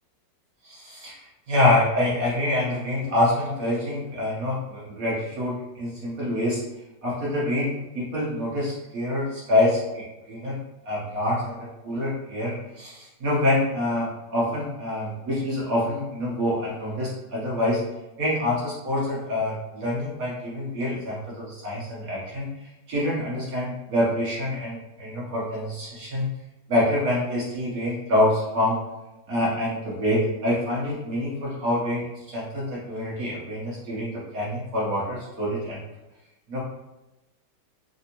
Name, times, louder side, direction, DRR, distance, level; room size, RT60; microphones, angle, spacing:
voice 1, 0.6-6.6 7.0-10.6 10.8-17.8 18.2-22.5 22.9-26.3 26.7-28.8 29.3-35.8 36.5-36.6, left 1 dB, 60° right, -6 dB, 1.2 m, -26 dB
3.4 x 2.7 x 2.8 m, 1.0 s
omnidirectional pair, 1.9 m